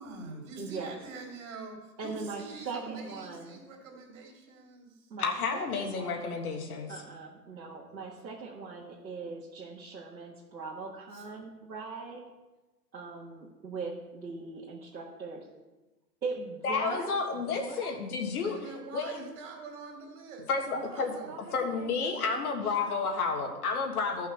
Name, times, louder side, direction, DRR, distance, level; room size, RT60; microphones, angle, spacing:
voice 1, 0.0-5.1 6.5-7.0 7.7-8.0 11.1-11.3 18.4-21.4, right 3 dB, 50° right, 1 dB, 2.9 m, -45 dB
voice 2, 0.6-1.0 2.0-3.6 5.1-6.3 6.9-12.2 12.9-15.5 16.2-17.2 17.5-18.0 20.7-23.0, right 4 dB, 85° right, -4 dB, 1.7 m, -41 dB
voice 3, 5.2-6.9 16.6-18.6 18.9-19.2 20.5-21.1 21.5-24.3, left 4 dB, 60° left, 3 dB, 1.7 m, -31 dB
14.0 x 5.6 x 4.5 m, 1.1 s
hypercardioid pair, 130°, 50 cm